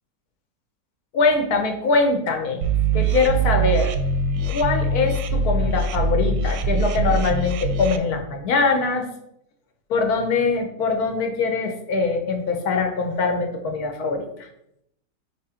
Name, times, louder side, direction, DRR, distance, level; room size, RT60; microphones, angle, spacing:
voice 1, 1.1-2.6 2.9-3.9 4.5-9.1 9.9-14.5, left 4 dB, 65° left, 5 dB, 1.3 m, -22 dB
sound 1, 2.6-8.0, right 3 dB, 90° right, 1.3 m, -22 dB
4.5 x 4.3 x 4.9 m, 0.78 s
omnidirectional pair, 1.9 m